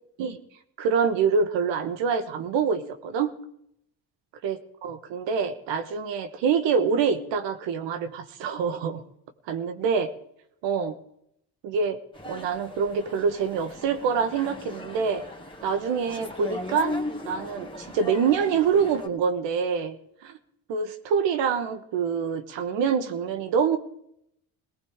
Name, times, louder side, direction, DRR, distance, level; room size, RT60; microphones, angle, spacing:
voice 1, 0.8-3.3 4.4-9.0 9.5-10.1 10.6-10.9 11.6-12.0 12.2-15.2 15.6-17.0 17.2-20.0 20.2-20.4 20.7-23.8, right 6 dB, 85° right, 9 dB, 1.5 m, -26 dB
sound 1, 12.1-19.1, left 1 dB, 10° left, 2.4 m, -38 dB
18.5 x 18.5 x 3.8 m, 0.73 s
supercardioid pair, 60°, 43 cm